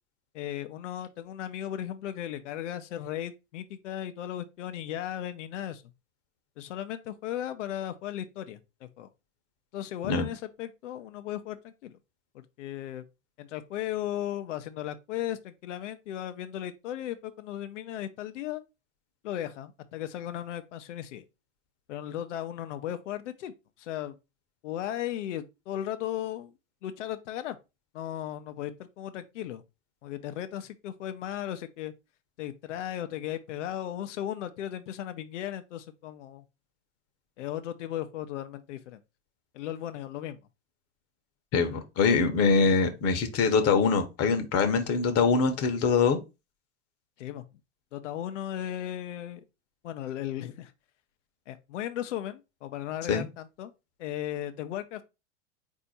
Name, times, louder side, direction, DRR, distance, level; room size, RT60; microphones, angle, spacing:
voice 1, 0.3-5.8 6.6-9.1 9.7-12.0 12.3-13.0 13.4-18.6 19.2-21.2 21.9-24.2 24.6-26.5 26.8-27.6 27.9-29.6 30.0-31.9 32.4-36.4 37.4-39.0 39.5-40.4 47.2-47.4 47.9-49.4 49.8-50.7 51.5-53.7 54.0-55.0, left 11 dB, 75° left, 0.6 m, -36 dB
voice 2, 41.5-46.2 53.1-53.3, left 5 dB, 40° left, 0.9 m, -24 dB
4.2 x 2.7 x 4.0 m
hypercardioid pair, 85°, 37 cm